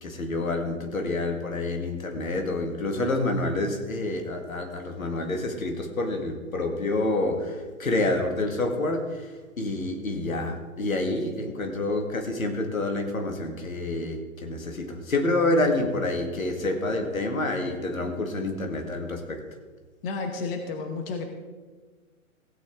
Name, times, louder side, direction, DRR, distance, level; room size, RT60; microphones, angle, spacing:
voice 1, 0.0-19.4, left 2 dB, 75° left, 4 dB, 2.0 m, -28 dB
voice 2, 20.0-21.2, left 4 dB, 45° left, 5 dB, 1.3 m, -31 dB
16.5 x 8.8 x 3.7 m, 1.4 s
figure-of-eight pair, 115°, 41 cm